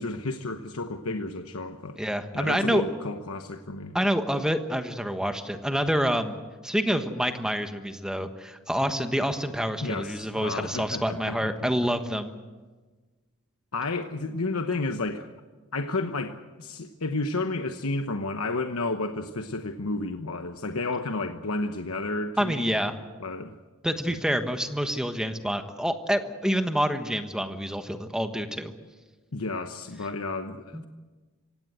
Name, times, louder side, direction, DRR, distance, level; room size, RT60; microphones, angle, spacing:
voice 1, 0.0-2.0 2.3-4.0 9.8-11.7 13.7-15.3 15.7-22.8 23.2-23.5 29.3-30.9, left 2 dB, 75° left, 1.1 m, -31 dB
voice 2, 2.0-2.8 3.9-6.4 6.6-12.3 22.4-22.9 23.8-28.7 30.7-30.8, equal, 5° right, 1.3 m, -27 dB
25.5 x 17.0 x 8.0 m
head